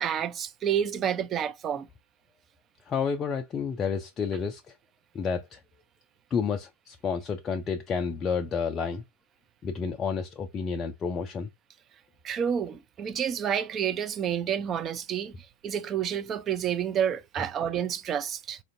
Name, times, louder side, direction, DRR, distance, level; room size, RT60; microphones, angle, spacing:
voice 1, 0.0-1.9 12.2-18.6, right 8 dB, 30° right, 0.5 m, -29 dB
voice 2, 2.9-4.6 5.1-5.6 6.3-9.0 9.6-11.5, left 6 dB, 25° left, 0.4 m, -30 dB
4.1 x 2.5 x 2.6 m
figure-of-eight pair, 90°, 0 cm